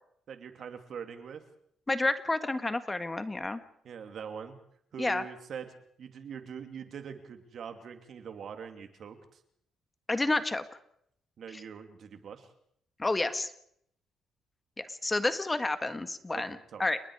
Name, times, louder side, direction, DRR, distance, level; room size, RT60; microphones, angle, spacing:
voice 1, 0.3-1.4 3.8-4.6 4.9-5.7 6.0-9.4 11.4-12.5 16.3-16.4 16.7-16.8, right 7 dB, 60° right, 7 dB, 2.9 m, -43 dB
voice 2, 1.9-3.6 5.0-5.2 10.1-10.6 11.5-11.6 13.0-13.5 14.8-17.0, left 2 dB, 20° left, 11 dB, 1.6 m, -30 dB
30.0 x 19.5 x 4.9 m, 0.70 s
cardioid pair, 90°, 0 cm